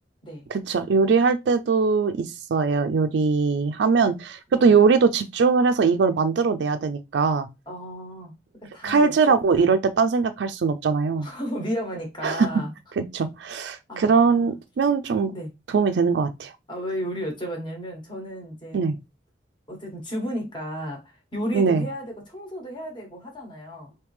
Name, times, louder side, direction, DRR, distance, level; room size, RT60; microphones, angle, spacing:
voice 1, 0.5-7.5 8.8-11.3 12.2-12.5 13.0-15.3 15.7-16.5 18.7-19.0 21.5-21.9, right 5 dB, 80° right, 0.4 m, -21 dB
voice 2, 7.7-8.3 8.7-9.1 9.5-9.7 11.2-12.7 13.9-14.6 15.3-15.5 16.7-18.8 19.7-23.9, equal, 25° left, 1.3 m, -33 dB
3.4 x 2.7 x 3.2 m
head